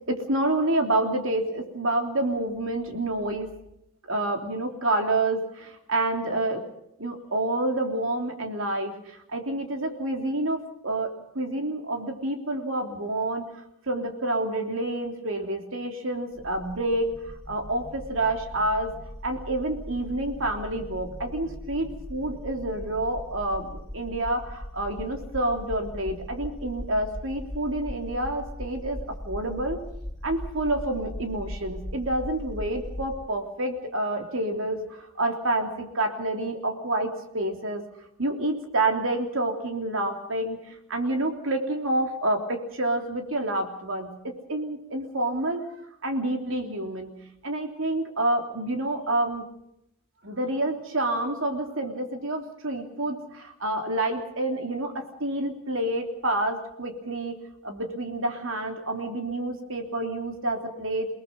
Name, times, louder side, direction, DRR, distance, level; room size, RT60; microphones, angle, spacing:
voice 1, 0.1-3.5 4.0-6.6 7.0-13.4 13.9-17.1 17.5-18.9 19.2-29.0 29.3-29.8 30.2-37.8 38.2-40.6 40.9-45.7 46.0-47.1 47.4-49.4 50.2-57.4 57.6-61.1, right 1 dB, 65° right, 4 dB, 3.3 m, -28 dB
sound 1, 16.4-33.2, equal, 5° left, 5.2 m, -39 dB
29.0 x 19.0 x 5.5 m, 0.78 s
head